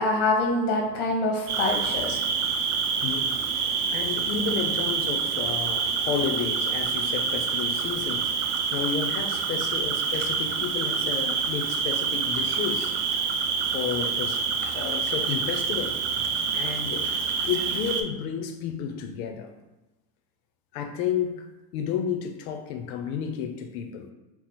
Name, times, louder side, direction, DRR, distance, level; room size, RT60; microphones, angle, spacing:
voice 1, 0.0-2.2, left 2 dB, 45° left, 0 dB, 0.9 m, -25 dB
Cricket, 1.5-18.0, right 6 dB, 85° right, 0.6 m, -27 dB
voice 2, 3.0-8.3 8.7-13.0 13.7-14.4 14.7-16.0 16.5-17.1 17.4-19.5 20.7-24.1, left 7 dB, 70° left, 5 dB, 0.5 m, -31 dB
2.9 x 2.0 x 4.0 m, 1.1 s
supercardioid pair, 165°, 44 cm